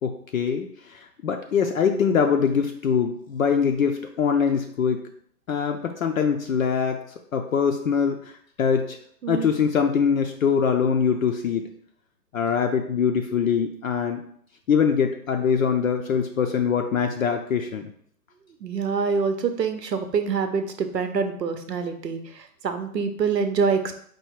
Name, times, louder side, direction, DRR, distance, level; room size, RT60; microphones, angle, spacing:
voice 1, 0.0-5.0 5.5-7.0 7.3-8.3 8.6-9.0 9.3-11.6 12.3-14.2 14.7-17.9, left 6 dB, 60° left, 4 dB, 0.5 m, -23 dB
voice 2, 18.6-24.0, right 5 dB, 85° right, 7 dB, 0.8 m, -26 dB
4.5 x 2.3 x 4.6 m, 0.63 s
hypercardioid pair, 145°, 48 cm